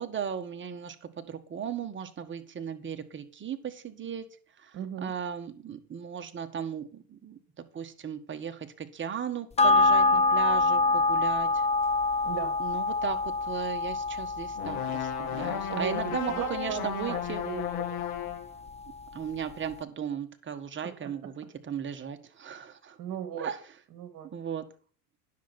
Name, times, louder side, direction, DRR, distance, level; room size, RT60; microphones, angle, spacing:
voice 1, 0.0-4.2 4.6-7.4 7.7-11.6 12.6-17.4 19.1-23.0 23.4-23.6 24.3-24.6, right 7 dB, 25° right, 8 dB, 1.4 m, -36 dB
voice 2, 4.7-5.1 12.2-12.6 15.7-16.0 16.3-17.2 17.5-17.6 17.9-18.1 21.0-21.1 23.0-23.5 23.9-24.3, right 10 dB, 45° right, 8 dB, 2.2 m, -36 dB
sound 1, 9.6-18.3 18.7-18.8, left 3 dB, 15° left, 0.7 m, -26 dB
sound 2, 14.6-18.5, left 10 dB, 60° left, 1.8 m, -34 dB
10.0 x 6.6 x 5.9 m, 0.39 s
hypercardioid pair, 90°, 47 cm